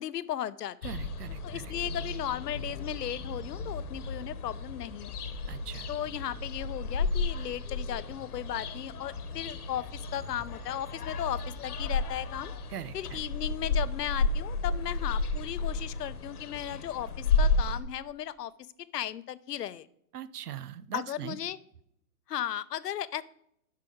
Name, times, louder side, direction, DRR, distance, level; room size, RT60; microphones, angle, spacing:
voice 1, 0.0-0.8 1.4-5.2 5.9-12.5 12.9-18.5 18.9-19.9 20.9-21.6 22.3-23.2, left 11 dB, 85° left, 17 dB, 0.8 m, -36 dB
sound 1, 0.8-17.8, left 3 dB, 70° left, 1.3 m, -33 dB
voice 2, 0.8-1.7 5.5-5.9 12.7-13.2 20.1-21.4, right 10 dB, 75° right, 16 dB, 0.8 m, -41 dB
10.5 x 6.0 x 5.0 m, 0.73 s
hypercardioid pair, 170°, 47 cm